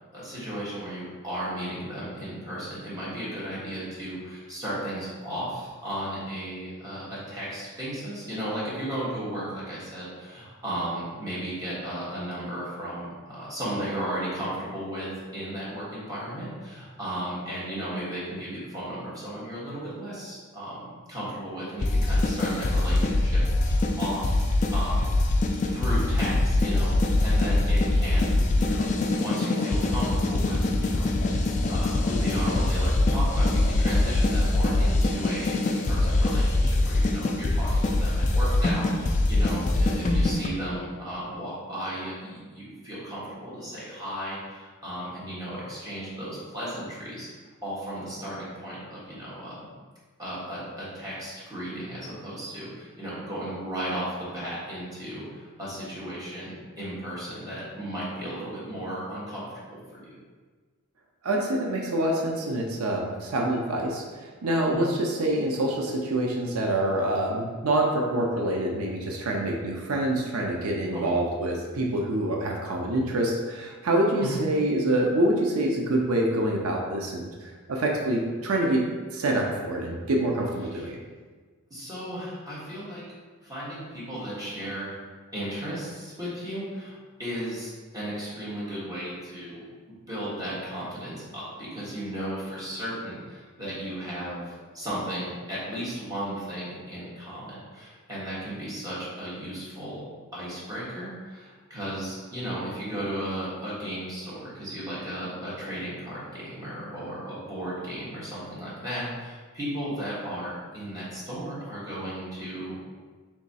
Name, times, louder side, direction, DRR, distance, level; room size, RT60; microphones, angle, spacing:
voice 1, 0.1-24.4 24.7-25.2 25.7-31.4 31.6-47.3 47.6-49.7 50.2-60.1 64.7-64.9 70.9-71.1 74.2-74.4 80.7-80.9 81.7-83.1 83.4-85.0 85.3-89.7 90.1-100.0 100.3-112.8, right 1 dB, 15° right, -9 dB, 1.3 m, -35 dB
sound 1, 21.8-40.5, left 2 dB, 35° left, 0.3 m, -23 dB
voice 2, 61.2-78.8 79.1-81.0, right 1 dB, 85° right, 0 dB, 0.5 m, -26 dB
3.5 x 3.0 x 4.1 m, 1.4 s
head